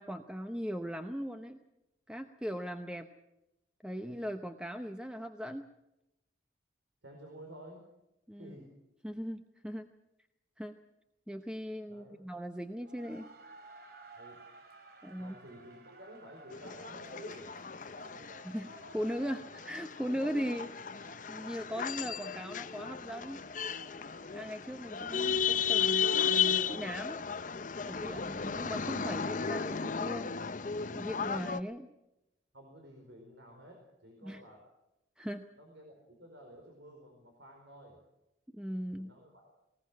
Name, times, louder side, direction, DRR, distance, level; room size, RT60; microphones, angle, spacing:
voice 1, 0.0-1.6 2.1-3.1 3.8-5.6 8.3-8.5 9.0-9.9 10.6-10.8 11.3-13.3 15.0-15.3 18.4-20.7 21.3-23.4 24.3-27.2 27.8-30.3 31.0-31.9 34.2-34.4 35.2-35.4 38.5-39.1, equal, 5° right, 6 dB, 0.8 m, -39 dB
voice 2, 7.0-7.8 8.3-8.7 11.9-12.3 14.2-14.4 15.2-17.5 32.5-34.6 35.6-38.0 39.0-39.5, right 1 dB, 85° right, 2 dB, 4.6 m, -52 dB
sound 1, 12.6-25.0, right 2 dB, 55° right, 2.9 m, -56 dB
sound 2, 16.5-31.6, left 7 dB, 45° left, 0.6 m, -34 dB
20.0 x 19.5 x 7.3 m, 0.90 s
head